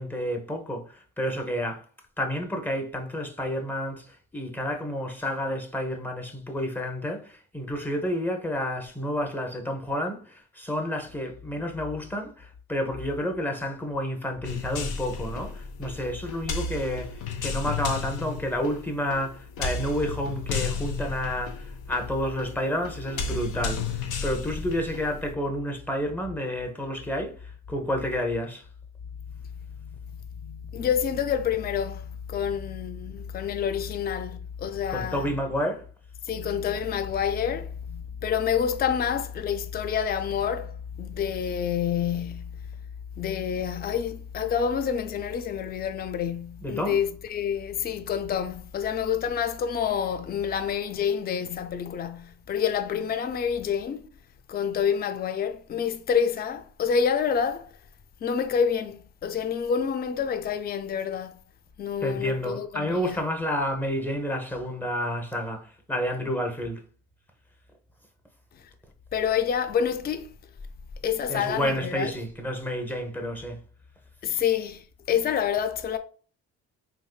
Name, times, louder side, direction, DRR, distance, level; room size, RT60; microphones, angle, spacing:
voice 1, 0.0-1.8 2.2-4.1 4.3-27.3 27.7-28.6 34.9-35.8 46.6-47.0 62.0-66.8 71.3-73.6, equal, 5° left, 0.7 m, -30 dB
sound 1, 14.4-25.3, left 4 dB, 80° left, 0.7 m, -33 dB
voice 2, 30.4-35.3 36.3-42.5 43.2-54.1 54.5-57.7 58.2-61.4 61.8-63.2 69.1-70.3 71.0-72.1 74.2-74.8 75.1-76.0, left 7 dB, 30° left, 0.4 m, -28 dB
3.5 x 3.1 x 2.3 m
cardioid pair, 90°, 30 cm